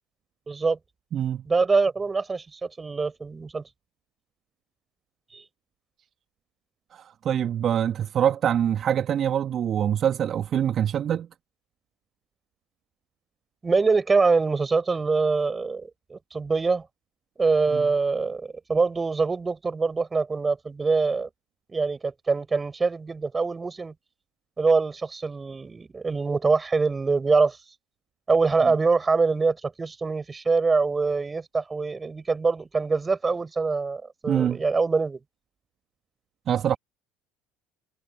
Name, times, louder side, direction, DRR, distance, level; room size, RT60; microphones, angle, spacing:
voice 1, 0.5-0.8 1.5-3.6 5.3-5.4 13.6-16.9 17.4-21.3 21.7-23.9 24.6-27.6 28.3-35.2, right 4 dB, 25° right, 7.6 m, -24 dB
voice 2, 1.1-1.5 6.9-11.3 17.7-17.8 34.3-34.6 36.5-36.8, right 9 dB, 45° right, 2.0 m, -24 dB
hypercardioid pair, 65°, 0 cm